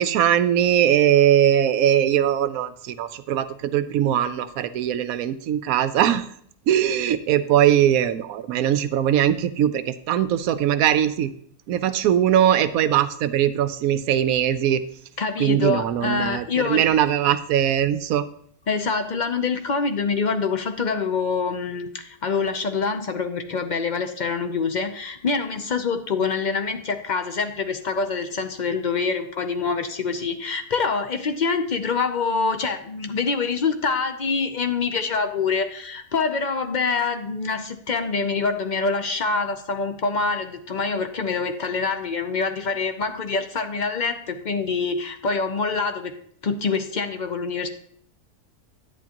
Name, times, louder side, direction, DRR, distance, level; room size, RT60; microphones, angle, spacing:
voice 1, 0.0-6.3 6.7-11.3 11.7-14.8 15.4-18.2, right 10 dB, 75° right, 13 dB, 1.0 m, -20 dB
voice 2, 15.2-16.9 18.7-46.2 46.4-47.7, left 4 dB, 55° left, 7 dB, 0.5 m, -25 dB
10.5 x 9.2 x 2.9 m, 0.63 s
omnidirectional pair, 1.6 m